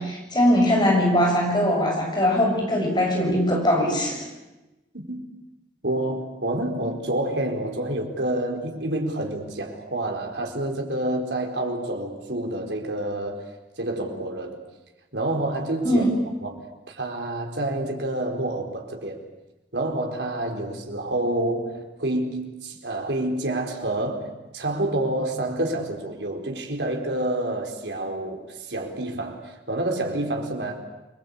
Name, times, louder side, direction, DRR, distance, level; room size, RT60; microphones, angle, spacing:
voice 1, 0.0-4.2 15.8-16.1, equal, 25° left, 7.1 m, -21 dB
voice 2, 5.8-13.4 13.8-14.6 15.1-16.1 16.4-19.2 19.7-30.8, right 1 dB, 75° right, 4.5 m, -28 dB
29.0 x 22.0 x 8.6 m
head